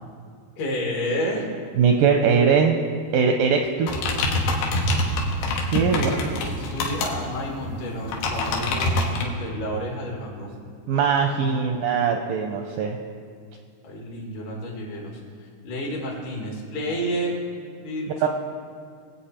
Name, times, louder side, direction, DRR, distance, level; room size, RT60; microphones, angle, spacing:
voice 1, 0.6-1.5 6.0-10.5 11.3-11.6 13.8-17.3 17.8-18.3, equal, 70° left, -1 dB, 4.2 m, -31 dB
voice 2, 1.8-2.8 3.1-4.1 5.7-6.1 10.9-13.0 18.2-18.3, right 6 dB, 80° right, 3 dB, 2.0 m, -21 dB
sound 1, 3.9-9.2, left 1 dB, 90° left, 3.6 m, -25 dB
23.5 x 8.5 x 4.3 m, 2.2 s
omnidirectional pair, 4.8 m